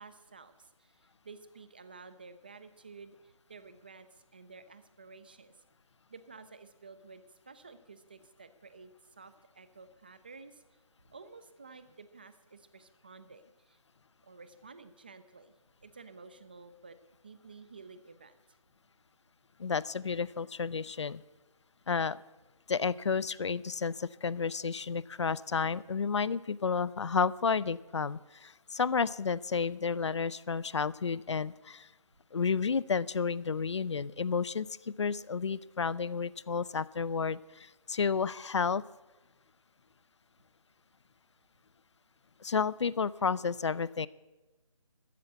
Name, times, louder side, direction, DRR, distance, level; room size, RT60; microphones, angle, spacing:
voice 1, 0.0-5.6 6.1-10.6 11.1-13.8 14.2-15.5 15.8-17.0 17.2-18.3, right 4 dB, 15° right, 12 dB, 0.4 m, -52 dB
voice 2, 19.6-21.2 21.9-22.2 22.7-31.9 32.3-38.8 42.4-44.1, left 5 dB, 55° left, 21 dB, 0.5 m, -31 dB
13.5 x 7.3 x 8.0 m, 1.1 s
figure-of-eight pair, 155°, 18 cm